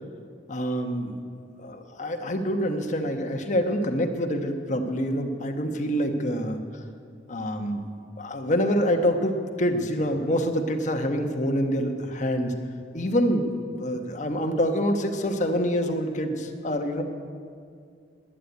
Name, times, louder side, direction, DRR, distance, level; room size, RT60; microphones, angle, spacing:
voice 1, 0.5-1.2 1.6-6.8 7.3-7.8 8.2-12.5 12.9-17.0, equal, 45° left, 5 dB, 1.2 m, -26 dB
11.0 x 9.8 x 9.3 m, 2.2 s
head